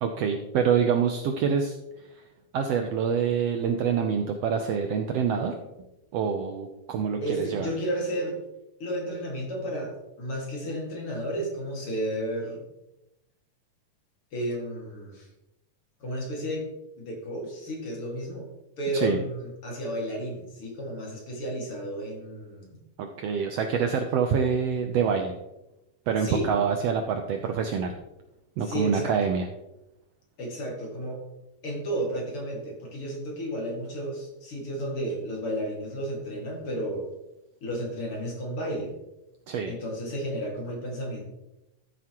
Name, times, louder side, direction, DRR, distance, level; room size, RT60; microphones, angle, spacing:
voice 1, 0.0-1.8 2.1-2.2 2.5-5.6 6.1-7.7 18.9-19.2 23.0-25.3 26.1-27.9 28.6-29.5 39.5-39.7, right 6 dB, 75° right, 5 dB, 1.5 m, -26 dB
voice 2, 7.2-8.4 8.8-12.6 14.3-15.3 16.0-16.6 17.0-18.5 18.8-22.8 26.2-26.5 28.6-29.2 30.4-31.2 31.6-37.1 37.6-38.9 39.6-41.2, right 1 dB, 50° left, -1 dB, 2.8 m, -32 dB
13.5 x 7.4 x 3.0 m, 0.93 s
omnidirectional pair, 3.5 m